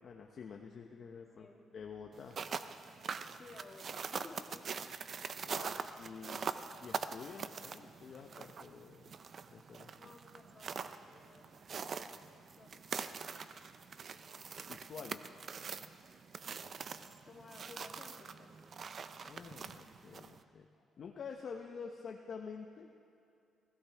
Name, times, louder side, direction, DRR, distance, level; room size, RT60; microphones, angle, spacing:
voice 1, 0.0-1.5 1.7-2.4 5.4-6.5 6.8-9.1 9.5-9.9 14.7-15.3 19.2-20.7 21.0-22.9, left 6 dB, 55° left, 2 dB, 0.9 m, -48 dB
voice 2, 0.8-1.6 3.3-4.6 9.9-12.9 16.5-16.8 17.2-18.5, left 3 dB, 35° left, -2 dB, 2.9 m, -56 dB
sound 1, 2.1-20.4, right 6 dB, 50° right, 0.6 m, -44 dB
25.0 x 16.5 x 3.5 m, 2.5 s
cardioid pair, 90°, 0 cm